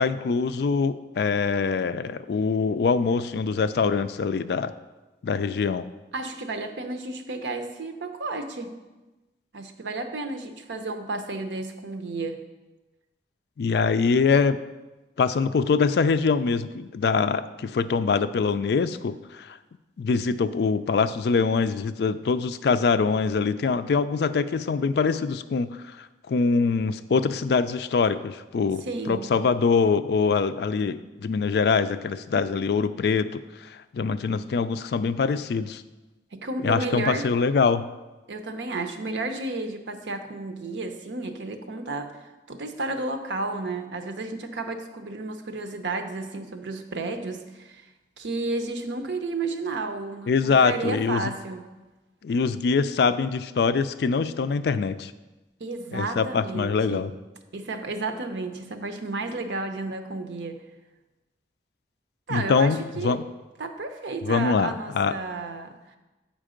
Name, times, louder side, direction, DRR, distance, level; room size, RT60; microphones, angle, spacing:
voice 1, 0.0-4.7 5.2-5.9 13.6-14.6 15.2-19.6 20.0-35.8 36.6-37.9 50.3-51.2 52.2-55.1 55.9-57.1 62.3-63.2 64.2-65.1, left 5 dB, 65° left, 13 dB, 0.3 m, -24 dB
voice 2, 6.1-8.7 9.5-12.4 28.8-29.3 36.3-37.3 38.3-47.9 48.2-51.6 55.6-57.1 57.5-60.6 62.3-63.2 63.6-66.0, right 3 dB, 85° right, 6 dB, 0.7 m, -32 dB
7.5 x 5.2 x 5.0 m, 1.1 s
head